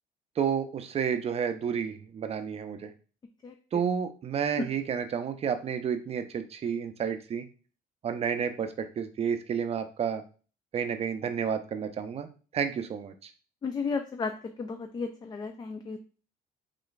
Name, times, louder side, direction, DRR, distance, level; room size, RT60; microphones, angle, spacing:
voice 1, 0.4-2.9 3.7-7.4 8.0-10.2 10.7-12.3 12.5-13.3, right 7 dB, 35° right, 9 dB, 0.5 m, -30 dB
voice 2, 3.4-3.8 4.6-4.7 13.6-16.0, left 4 dB, 25° left, 5 dB, 0.3 m, -34 dB
3.2 x 2.3 x 3.9 m, 0.37 s
cardioid pair, 110°, 17 cm